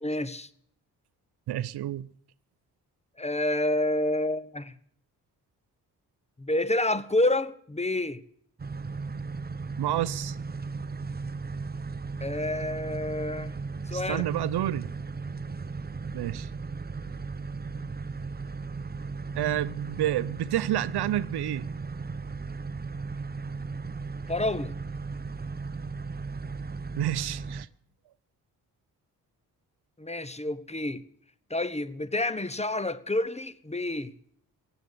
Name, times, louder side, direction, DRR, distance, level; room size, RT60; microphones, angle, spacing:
voice 1, 0.0-0.5 3.2-4.7 6.4-8.2 12.2-13.5 13.9-14.2 24.3-24.7 30.0-31.0 31.5-34.1, left 1 dB, 15° left, 1.1 m, -28 dB
voice 2, 1.5-2.1 9.8-10.4 13.9-14.9 16.1-16.5 19.3-21.7 27.0-27.7, right 13 dB, 70° right, 0.7 m, -29 dB
sound 1, 8.6-27.7, right 4 dB, 25° right, 0.8 m, -36 dB
16.0 x 9.1 x 8.3 m
supercardioid pair, 45°, 41 cm